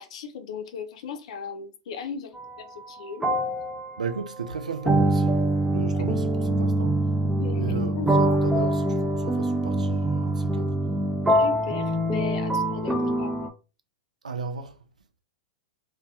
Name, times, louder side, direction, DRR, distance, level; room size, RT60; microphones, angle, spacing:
voice 1, 0.0-3.3 5.8-6.0 7.2-8.4 11.3-13.5, left 6 dB, 60° left, 0.4 m, -38 dB
sound 1, 2.4-2.6 3.2-13.5, right 1 dB, 5° right, 0.3 m, -24 dB
voice 2, 4.0-5.4 5.7-7.0 7.5-10.7 14.2-14.8, right 5 dB, 85° right, 0.4 m, -34 dB
2.2 x 2.1 x 2.7 m
hypercardioid pair, 100°, 4 cm